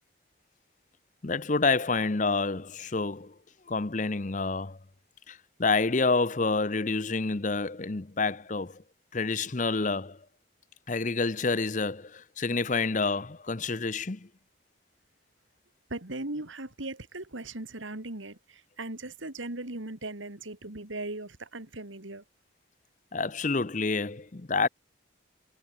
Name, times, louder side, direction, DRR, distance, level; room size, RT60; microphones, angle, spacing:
voice 1, 1.2-3.3 3.7-4.8 5.3-8.8 9.1-10.2 10.9-14.3 23.1-24.7, left 3 dB, 40° left, 0.8 m, -28 dB
voice 2, 15.9-22.2, right 2 dB, 80° right, 2.6 m, -38 dB
head